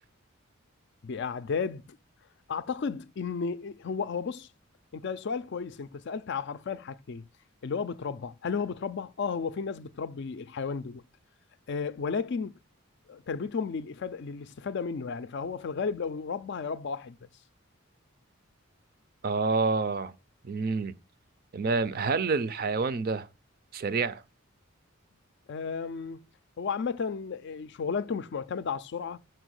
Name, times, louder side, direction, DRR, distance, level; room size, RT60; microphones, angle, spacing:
voice 1, 1.0-2.0 2.5-4.5 4.9-7.3 7.6-11.0 11.7-12.6 13.1-17.2 25.5-26.2 26.6-29.2, left 5 dB, 55° left, 0.4 m, -33 dB
voice 2, 19.2-20.1 20.4-20.9 21.5-23.3 23.7-24.2, right 4 dB, 45° right, 0.4 m, -28 dB
5.9 x 4.5 x 6.3 m
head